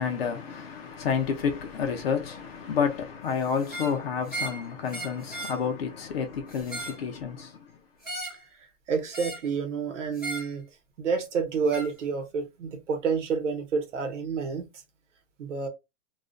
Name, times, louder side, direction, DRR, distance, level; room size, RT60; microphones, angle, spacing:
voice 1, 0.0-7.5, left 6 dB, 50° left, 0.6 m, -29 dB
sound 1, 3.6-4.0 4.3-4.6 4.9-5.6 6.5-7.0 8.0-8.4 9.1-9.5 10.2-10.5 11.7-11.9, right 2 dB, 5° right, 0.5 m, -36 dB
voice 2, 8.9-10.6 11.0-14.7 15.4-15.7, right 5 dB, 65° right, 0.9 m, -29 dB
2.4 x 2.1 x 2.4 m
hypercardioid pair, 180°, 39 cm